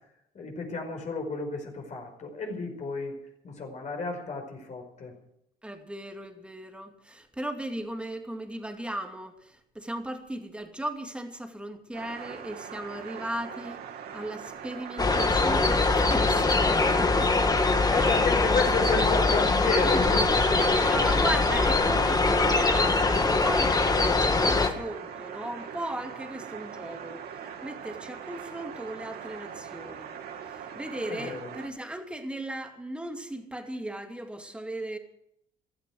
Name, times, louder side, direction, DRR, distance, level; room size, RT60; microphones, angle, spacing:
voice 1, 0.3-3.2 3.4-5.1 16.7-17.1 17.9-20.2 20.5-20.6 31.1-31.5, left 4 dB, 45° left, 5.0 m, -32 dB
voice 2, 5.6-13.8 14.1-17.5 17.8-18.1 19.8-20.1 20.5-27.2 27.6-30.1 30.5-35.0, right 1 dB, 5° right, 2.4 m, -37 dB
sound 1, 11.9-31.7, right 7 dB, 70° right, 2.5 m, -41 dB
sound 2, 15.0-24.7, left 3 dB, 20° left, 1.8 m, -23 dB
16.0 x 13.5 x 6.3 m
cardioid pair, 110°, 17 cm